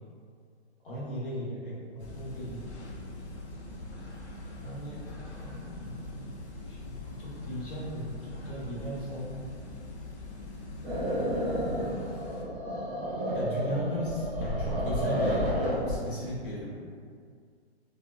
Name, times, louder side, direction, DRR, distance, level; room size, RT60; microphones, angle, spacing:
voice 1, 0.8-2.6 4.6-5.0 5.3-6.3 6.7-9.4 13.3-16.8, equal, 55° left, -7 dB, 1.1 m, -37 dB
sound 1, 2.0-12.4, left 2 dB, 80° left, 0.6 m, -43 dB
sound 2, 10.8-16.0, equal, 20° right, 0.8 m, -30 dB
3.7 x 2.1 x 2.3 m, 2.1 s
hypercardioid pair, 150°, 33 cm